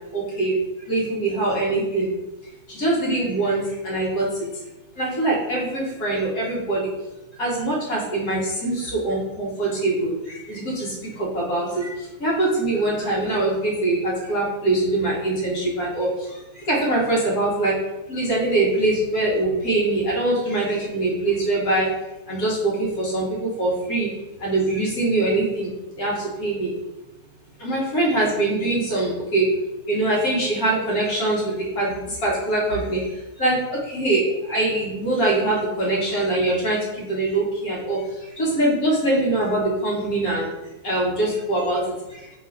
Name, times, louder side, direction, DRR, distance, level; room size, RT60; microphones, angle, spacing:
voice 1, 0.1-0.6 0.9-2.1 2.7-4.3 5.0-6.9 7.4-16.4 16.7-17.7 18.1-21.9 22.3-24.1 24.4-25.7 26.0-26.7 27.6-29.4 29.9-33.0 33.4-38.0 38.4-40.5 40.8-41.8, right 2 dB, 85° left, -5 dB, 1.7 m, -23 dB
3.1 x 3.0 x 4.4 m, 1.0 s
omnidirectional pair, 1.5 m